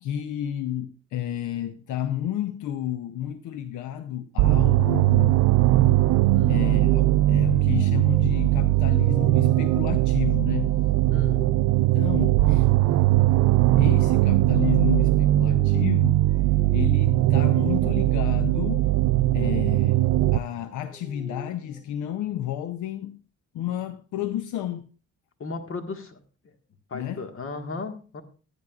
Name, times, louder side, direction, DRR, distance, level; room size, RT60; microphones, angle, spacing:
voice 1, 0.0-5.5 6.5-10.8 11.9-12.7 13.8-16.2 16.7-18.9 19.3-20.0 20.3-23.2 23.5-24.9 26.9-27.3, left 11 dB, 80° left, 0.6 m, -31 dB
sound 1, 4.4-20.4, right 16 dB, 75° right, 0.4 m, -20 dB
voice 2, 6.3-6.6 11.1-11.5 25.4-26.2 26.4-26.5 26.9-28.2, left 3 dB, 45° left, 1.5 m, -35 dB
sound 2, 6.5-18.4 19.6-21.8, right 2 dB, 10° right, 1.3 m, -46 dB
14.5 x 9.4 x 2.4 m
cardioid pair, 90°, 30 cm